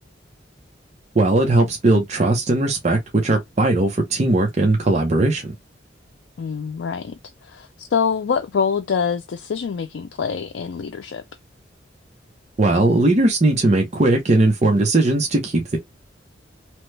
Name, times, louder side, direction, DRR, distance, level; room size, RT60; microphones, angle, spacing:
voice 1, 1.1-5.5 12.6-15.8, right 2 dB, 40° right, 0.6 m, -18 dB
voice 2, 6.4-7.1 7.4-11.2, left 6 dB, 80° left, 0.4 m, -25 dB
2.9 x 2.1 x 3.1 m
head